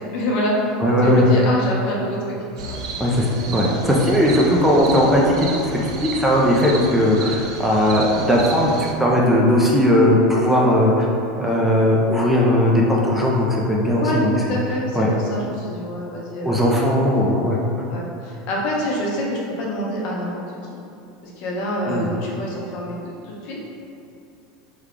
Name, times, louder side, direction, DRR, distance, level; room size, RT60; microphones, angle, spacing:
voice 1, 0.1-2.2 2.6-2.7 13.9-17.3 17.9-20.8 21.2-23.6, equal, 60° left, -3 dB, 0.7 m, -27 dB
voice 2, 0.8-1.3 3.0-3.3 3.5-8.7 9.0-11.1 11.4-14.6 15.0-15.1 16.4-17.6 21.9-22.1, equal, 5° right, -4 dB, 0.4 m, -18 dB
sound 1, 2.6-8.9, right 4 dB, 90° right, 0.4 m, -32 dB
3.2 x 2.3 x 3.6 m, 2.6 s
supercardioid pair, 125°, 3 cm